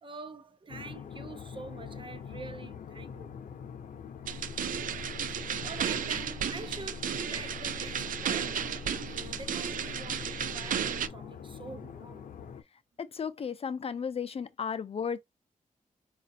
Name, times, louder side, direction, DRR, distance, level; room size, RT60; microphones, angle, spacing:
voice 1, 0.0-3.3 5.3-12.2, right 4 dB, 40° right, 0.7 m, -46 dB
sound 1, 0.7-12.6, left 7 dB, 85° left, 0.7 m, -44 dB
sound 2, 4.3-11.1, right 7 dB, 85° right, 0.4 m, -33 dB
voice 2, 13.0-15.2, left 6 dB, 50° left, 0.5 m, -34 dB
4.9 x 2.4 x 2.8 m
wide cardioid pair, 105°, 14 cm